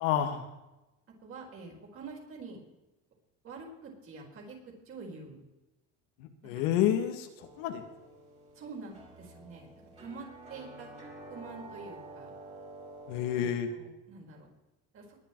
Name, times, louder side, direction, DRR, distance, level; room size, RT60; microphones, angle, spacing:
voice 1, 0.0-0.4 6.4-7.3 7.6-7.8 13.1-13.7, left 10 dB, 85° left, 6 dB, 2.0 m, -28 dB
voice 2, 1.2-2.6 3.4-5.4 6.4-6.5 8.5-9.7 10.0-10.9 11.3-12.3 13.4-14.5 14.9-15.1, right 4 dB, 40° right, 0 dB, 4.9 m, -46 dB
sound 1, 7.4-13.5, right 2 dB, 20° right, 4.0 m, -49 dB
20.5 x 10.0 x 4.7 m, 1.0 s
cardioid pair, 135°, 33 cm